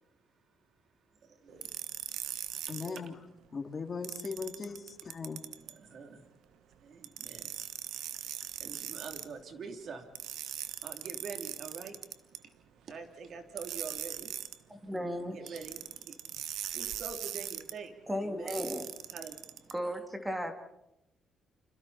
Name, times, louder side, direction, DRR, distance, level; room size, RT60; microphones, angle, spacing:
voice 1, 1.1-1.7 2.7-3.1 5.6-6.3 6.8-7.6 8.6-10.1 10.8-12.0 12.4-12.5 12.8-14.3 15.3-16.2 16.7-17.9 18.2-18.6 19.1-19.4, right 5 dB, 60° right, 6 dB, 3.4 m, -45 dB
sound 1, 1.6-3.0 4.0-5.7 7.0-9.3 10.2-12.4 13.6-14.6 15.5-17.7 18.5-19.7, right 11 dB, 85° right, 1.3 m, -40 dB
voice 2, 2.7-3.1 3.5-5.4, left 5 dB, 40° left, 5 dB, 3.0 m, -39 dB
voice 3, 14.7-15.4 18.1-18.9 19.7-20.5, equal, 10° right, 6 dB, 2.8 m, -35 dB
29.5 x 27.0 x 4.4 m, 0.88 s
cardioid pair, 90°, 0 cm